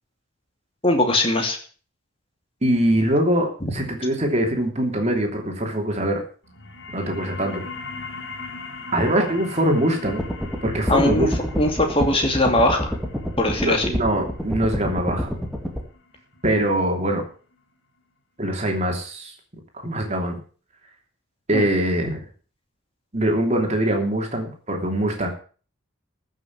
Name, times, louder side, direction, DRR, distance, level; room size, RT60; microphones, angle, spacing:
voice 1, 0.8-1.6 3.6-3.7 10.9-11.3 11.5-12.9 13.4-13.8 21.5-21.6, left 1 dB, 25° left, 4 dB, 2.6 m, -20 dB
voice 2, 2.6-6.2 6.9-7.6 8.9-10.2 10.6-11.3 13.6-15.3 16.4-17.2 18.4-19.3 19.8-20.4 21.5-22.2 23.1-25.3, right 1 dB, 30° right, 3 dB, 3.0 m, -23 dB
sound 1, 6.4-17.5, left 4 dB, 60° left, 3.3 m, -40 dB
sound 2, 10.1-15.8, equal, ahead, 2.0 m, -28 dB
14.5 x 6.5 x 7.4 m, 0.40 s
head